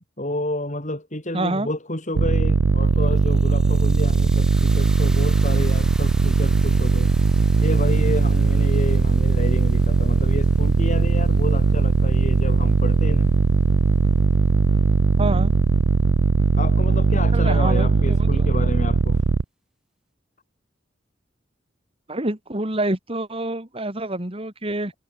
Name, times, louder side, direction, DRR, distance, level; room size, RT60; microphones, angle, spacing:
voice 1, 0.2-7.1 7.6-13.3 16.6-19.2, left 1 dB, 40° left, 7.2 m, -30 dB
voice 2, 1.3-1.7 15.2-15.5 17.3-18.5 22.1-24.9, right 1 dB, 30° right, 2.7 m, -27 dB
sound 1, 2.1-19.4, right 4 dB, 80° right, 0.5 m, -19 dB
sound 2, 2.8-13.0, right 1 dB, 5° right, 5.6 m, -43 dB
head